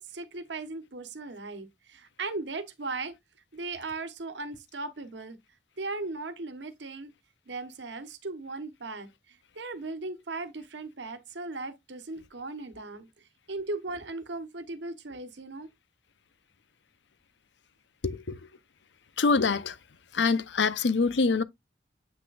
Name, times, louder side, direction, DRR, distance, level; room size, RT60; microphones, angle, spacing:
voice 1, 0.0-3.1 3.5-5.4 5.8-7.1 7.5-13.1 13.5-15.7, right 3 dB, 85° right, 1.1 m, -37 dB
voice 2, 18.0-18.4 19.2-19.8 20.1-21.4, left 4 dB, 85° left, 0.7 m, -25 dB
8.1 x 5.9 x 2.4 m
head